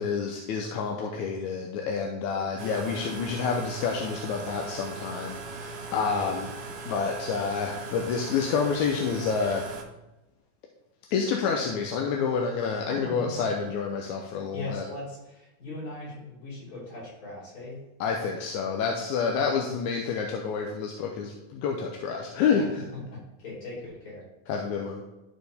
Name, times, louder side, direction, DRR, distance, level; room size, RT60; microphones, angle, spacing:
voice 1, 0.0-6.5 6.9-9.6 11.1-14.8 18.0-22.8 24.5-25.0, left 5 dB, 85° left, 1 dB, 2.1 m, -28 dB
sound 1, 2.6-9.8, right 3 dB, 70° right, 1.5 m, -39 dB
voice 2, 14.5-17.8 23.1-24.2, left 2 dB, 60° left, -8 dB, 4.5 m, -39 dB
12.5 x 4.4 x 3.4 m, 0.99 s
omnidirectional pair, 3.4 m